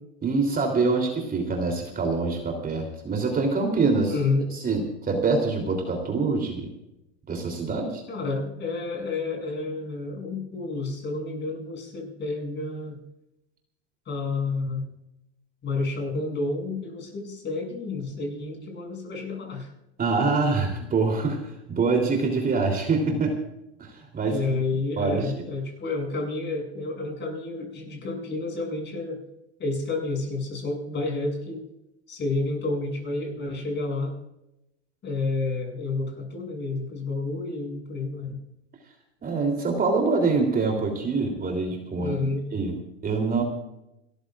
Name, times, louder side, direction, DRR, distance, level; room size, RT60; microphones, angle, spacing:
voice 1, 0.2-4.2 4.5-4.8 5.1-6.7 7.3-8.0 20.0-21.4 21.7-23.3 23.8-24.4 25.0-25.3 39.2-42.2 42.5-42.8 43.0-43.4, right 4 dB, 25° right, 2 dB, 3.4 m, -25 dB
voice 2, 4.1-4.4 8.1-13.0 14.1-14.9 15.6-19.7 24.2-29.2 29.6-31.7 32.1-34.1 35.0-38.4 42.0-42.4, left 3 dB, 30° left, 0 dB, 7.4 m, -30 dB
29.0 x 14.0 x 2.5 m, 0.87 s
hypercardioid pair, 110°, 36 cm